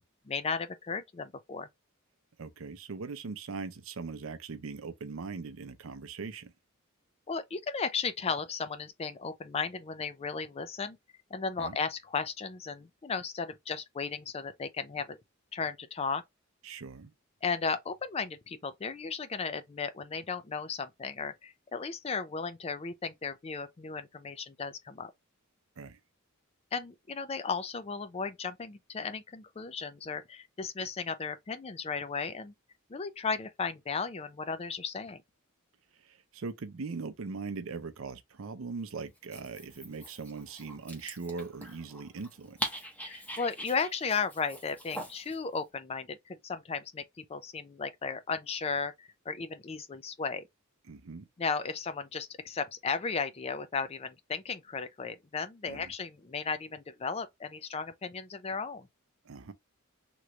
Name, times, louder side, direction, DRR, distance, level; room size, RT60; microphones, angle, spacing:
voice 1, 0.2-1.7 7.3-11.0 11.3-15.2 15.5-16.2 17.4-25.1 26.7-32.5 32.9-35.2 43.0-50.5 51.4-58.9, left 5 dB, 30° left, 0.4 m, -35 dB
voice 2, 2.4-6.5 11.6-11.8 16.6-17.1 25.8-26.0 36.1-42.6 50.9-51.2 55.7-55.9 59.3-59.5, right 4 dB, 65° right, 0.6 m, -40 dB
Dog, 39.1-45.4, equal, 5° left, 0.8 m, -42 dB
3.0 x 2.4 x 3.1 m
head